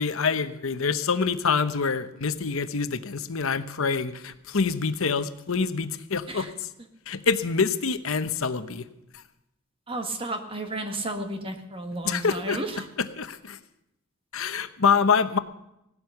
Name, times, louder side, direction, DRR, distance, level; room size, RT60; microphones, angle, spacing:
voice 1, 0.0-6.5 7.1-8.8 12.0-12.6 13.2-13.6 14.3-15.4, left 5 dB, 75° left, 10 dB, 0.9 m, -26 dB
voice 2, 9.9-12.9, right 2 dB, 25° right, 5 dB, 1.6 m, -32 dB
17.0 x 12.5 x 5.8 m, 0.85 s
head